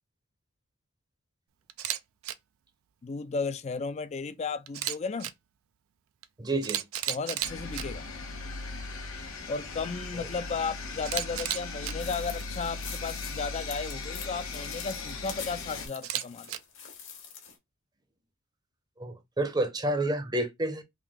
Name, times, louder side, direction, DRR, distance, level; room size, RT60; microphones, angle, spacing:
Camera, 1.7-2.0 2.2-2.3 4.7-5.3 6.2-6.3 6.6-7.8 11.0-11.9 16.0-16.6, right 12 dB, 80° right, 0.4 m, -32 dB
voice 1, 3.0-5.3 7.1-8.0 9.5-16.5, left 4 dB, 30° left, 0.4 m, -34 dB
voice 2, 6.4-6.8 10.2-10.3 19.0-20.8, right 1 dB, 20° right, 0.6 m, -29 dB
sound 1, 7.4-15.9, left 3 dB, 75° left, 1.0 m, -38 dB
sound 2, 12.0-17.6, left 7 dB, 60° left, 1.2 m, -45 dB
3.7 x 2.7 x 3.4 m
head